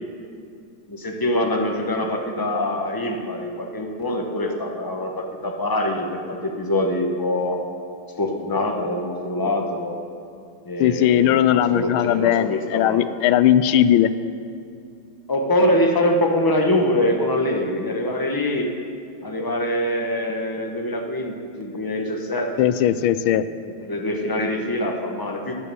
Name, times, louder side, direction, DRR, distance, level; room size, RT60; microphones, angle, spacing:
voice 1, 0.9-7.6 8.2-10.0 10.6-13.0 15.3-18.7 19.2-22.7 23.8-25.5, left 1 dB, 15° left, 2 dB, 0.7 m, -24 dB
voice 2, 10.8-14.1 22.6-23.5, left 11 dB, 90° left, 14 dB, 1.4 m, -18 dB
12.5 x 9.9 x 6.9 m, 2.4 s
omnidirectional pair, 2.2 m